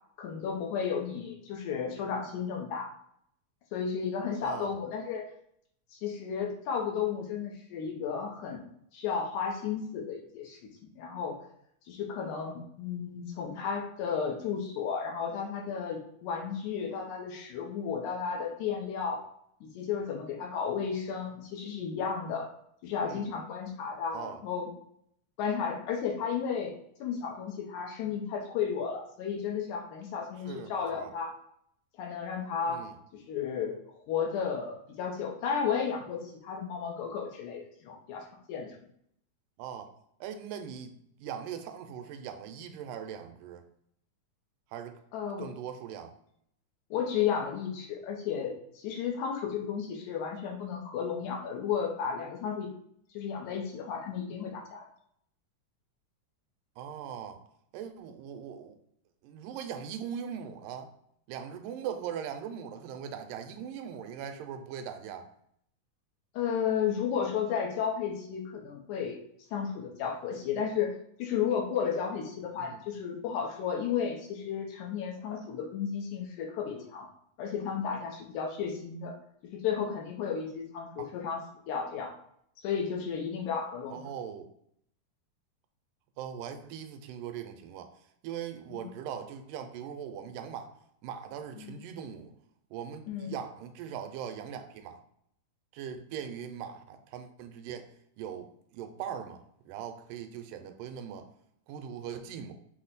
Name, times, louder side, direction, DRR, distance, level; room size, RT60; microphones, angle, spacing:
voice 1, 0.2-2.9 3.7-5.2 6.0-8.7 8.9-10.6 11.0-11.4 11.9-19.2 19.6-22.5 22.8-24.7 25.4-26.7 27.0-31.3 32.0-32.8 33.1-33.8 34.1-38.2 38.5-38.8 45.1-45.5 46.9-48.6 48.8-52.7 53.1-54.9 66.3-69.2 69.5-70.9 71.2-77.1 77.4-79.2 79.5-81.4 81.7-82.1 82.6-84.0 88.7-88.9 91.6-91.8 93.1-93.3, left 7 dB, 80° left, 1 dB, 2.1 m, -33 dB
voice 2, 4.4-4.8 23.0-23.3 24.1-24.4 30.5-31.1 32.7-33.0 39.6-39.9 40.2-40.9 41.2-43.6 44.7-45.0 45.4-46.1 56.8-57.4 57.7-58.8 59.2-60.9 61.3-65.3 72.6-72.8 81.0-81.1 83.9-84.5 86.2-87.9 88.2-90.7 91.0-92.3 92.7-95.0 95.7-97.9 98.2-98.5 98.7-101.3 101.7-102.5, right 8 dB, 85° right, 7 dB, 2.2 m, -40 dB
5.9 x 2.1 x 3.9 m, 0.69 s
omnidirectional pair, 3.7 m